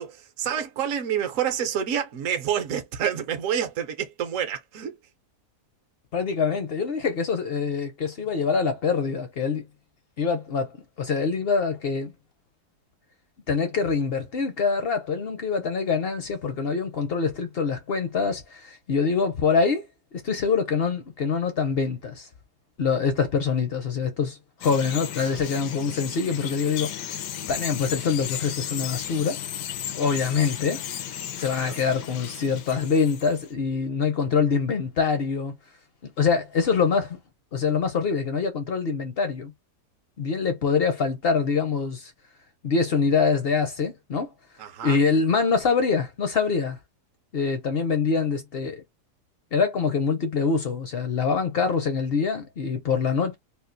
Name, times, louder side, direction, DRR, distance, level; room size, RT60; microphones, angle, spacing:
voice 1, 0.0-5.0 31.5-31.8 44.6-45.0, right 9 dB, 65° right, 0.9 m, -28 dB
voice 2, 6.1-9.7 10.2-12.1 13.5-19.8 20.1-22.3 22.8-27.2 27.5-29.4 29.9-30.8 31.4-35.5 36.2-37.2 37.5-39.5 40.2-42.1 42.6-44.3 44.8-46.8 47.3-48.8 49.5-53.3, left 5 dB, 60° left, 0.6 m, -25 dB
Bird vocalization bird call bird song, 24.6-33.5, left 10 dB, 85° left, 1.3 m, -35 dB
3.6 x 2.4 x 2.6 m
omnidirectional pair, 1.8 m